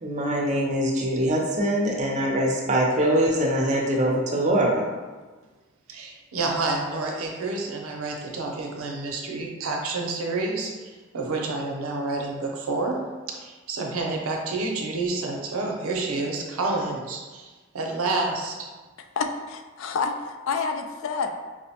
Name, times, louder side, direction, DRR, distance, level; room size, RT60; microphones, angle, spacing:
voice 1, 0.0-4.8, right 1 dB, 35° right, -1 dB, 0.5 m, -23 dB
voice 2, 5.9-13.0 13.3-17.5 17.7-18.7, right 3 dB, 85° right, 0 dB, 0.6 m, -29 dB
voice 3, 19.2-21.3, left 5 dB, 65° left, 5 dB, 0.3 m, -28 dB
4.7 x 2.1 x 2.7 m, 1.3 s
head